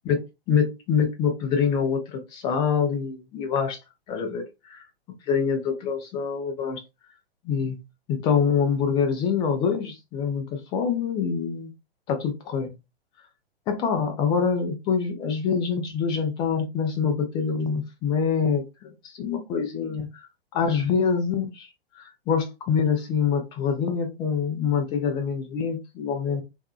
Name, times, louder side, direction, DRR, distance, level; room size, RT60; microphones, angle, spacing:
voice 1, 0.1-3.8 4.1-4.8 5.3-6.8 7.4-7.8 8.1-11.7 12.1-12.7 13.7-20.3 20.5-21.7 21.9-26.4, left 6 dB, 15° left, 0.4 m, -25 dB
2.6 x 2.2 x 2.3 m
figure-of-eight pair, 110°, 31 cm